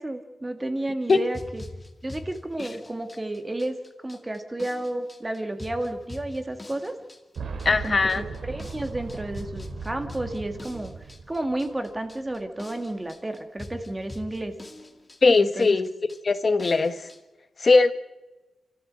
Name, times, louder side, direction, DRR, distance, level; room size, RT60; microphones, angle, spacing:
voice 1, 0.0-1.6 2.0-3.8 4.0-6.9 7.8-10.9 11.3-14.5 15.4-15.8, right 1 dB, 15° right, 6 dB, 2.1 m, -31 dB
sound 1, 1.0-17.2, left 2 dB, 15° left, 2.2 m, -44 dB
Boom, 7.4-12.1 12.4-12.5 13.6-13.7, right 5 dB, 70° right, 3.0 m, -37 dB
voice 2, 7.6-8.2 15.2-15.9 16.2-17.1 17.6-17.9, left 3 dB, 35° left, 10 dB, 1.3 m, -20 dB
29.5 x 14.5 x 7.7 m, 1.1 s
wide cardioid pair, 145°, 0 cm